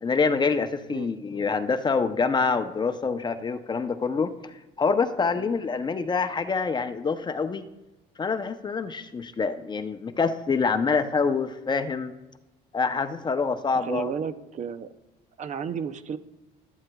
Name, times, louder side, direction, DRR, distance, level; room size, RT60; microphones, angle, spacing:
voice 1, 0.0-7.7 8.2-12.1 12.7-14.1, left 4 dB, 25° left, 9 dB, 0.6 m, -26 dB
voice 2, 13.7-14.9 15.4-16.2, right 7 dB, 45° right, 12 dB, 0.6 m, -33 dB
13.0 x 11.5 x 2.3 m, 1.0 s
cardioid pair, 110°, 17 cm